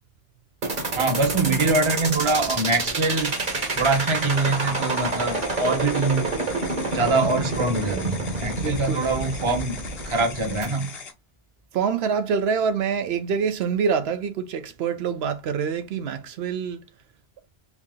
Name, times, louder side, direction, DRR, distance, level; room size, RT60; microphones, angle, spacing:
sound 1, 0.6-10.6, right 3 dB, 50° right, 1.2 m, -27 dB
voice 1, 1.0-6.3 6.9-10.9, right 3 dB, 30° right, 0.8 m, -24 dB
sound 2, 3.2-11.1, left 5 dB, 70° left, 1.2 m, -40 dB
voice 2, 8.6-9.1 11.7-16.8, right 6 dB, 80° right, 0.8 m, -26 dB
3.4 x 2.7 x 3.6 m
omnidirectional pair, 1.1 m